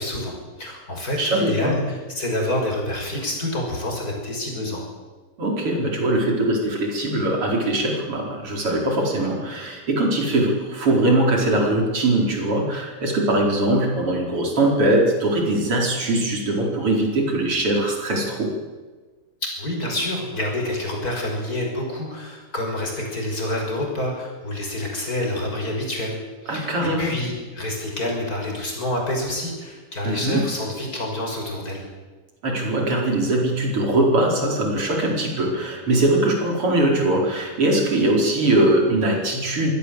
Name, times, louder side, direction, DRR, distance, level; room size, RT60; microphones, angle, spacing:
voice 1, 0.0-4.8 19.4-26.2 26.4-31.9, left 1 dB, 40° left, 0 dB, 6.4 m, -27 dB
voice 2, 1.2-1.8 5.4-18.5 26.5-27.2 30.0-30.4 32.4-39.7, right 1 dB, 90° right, 0 dB, 5.6 m, -21 dB
24.5 x 16.0 x 8.0 m, 1.3 s
omnidirectional pair, 2.4 m